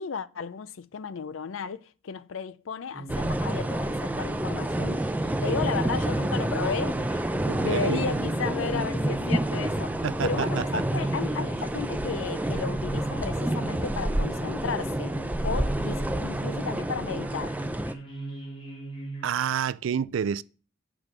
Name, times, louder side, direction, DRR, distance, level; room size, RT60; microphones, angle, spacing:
voice 1, 0.0-5.0 5.4-7.3 7.6-15.2 15.4-17.6, left 6 dB, 75° left, 0.5 m, -34 dB
sound 1, 2.9-19.3, right 1 dB, 25° left, 2.3 m, -38 dB
sound 2, 3.1-17.9, right 1 dB, 10° right, 0.5 m, -29 dB
voice 2, 7.5-8.0 10.0-10.8 19.2-20.4, right 7 dB, 70° right, 0.4 m, -29 dB
8.7 x 5.0 x 6.0 m
head